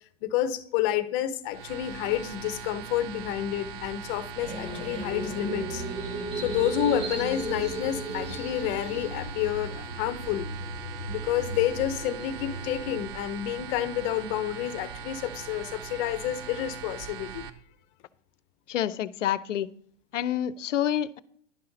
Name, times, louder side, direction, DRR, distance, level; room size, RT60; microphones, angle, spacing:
voice 1, 0.2-5.8 6.4-10.5 11.1-17.4, left 12 dB, 30° left, 0.8 m, -29 dB
sound 1, 1.5-17.5, right 6 dB, 45° right, 0.8 m, -41 dB
sound 2, 4.4-13.0, right 2 dB, 15° right, 3.1 m, -36 dB
voice 2, 18.7-19.7 20.1-21.2, left 11 dB, 75° left, 0.6 m, -28 dB
11.0 x 5.7 x 3.9 m
hypercardioid pair, 125°, 38 cm